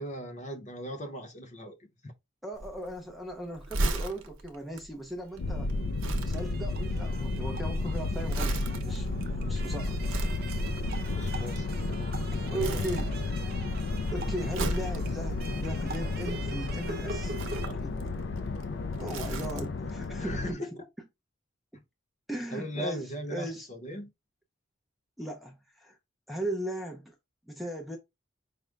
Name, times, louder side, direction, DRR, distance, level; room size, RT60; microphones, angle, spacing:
voice 1, 0.0-1.8 2.0-2.1 11.1-12.8 17.6-17.8 20.2-20.7 21.7-21.8 22.5-24.1, equal, 35° left, 0.8 m, -39 dB
voice 2, 2.4-5.7 6.3-10.0 12.5-13.2 14.1-17.3 17.8-18.0 19.0-20.6 22.3-23.7 25.2-26.0 26.3-27.2 27.5-28.0, right 1 dB, ahead, 0.5 m, -37 dB
Crumpling crinkling, 2.5-12.2 12.6-13.5 13.8-16.5 17.2-19.9 20.2-20.3, right 2 dB, 80° right, 0.8 m, -36 dB
sound 1, 5.4-20.5, left 2 dB, 55° left, 0.4 m, -32 dB
sound 2, 5.4-17.7, right 4 dB, 50° right, 0.6 m, -44 dB
5.0 x 2.2 x 3.3 m
head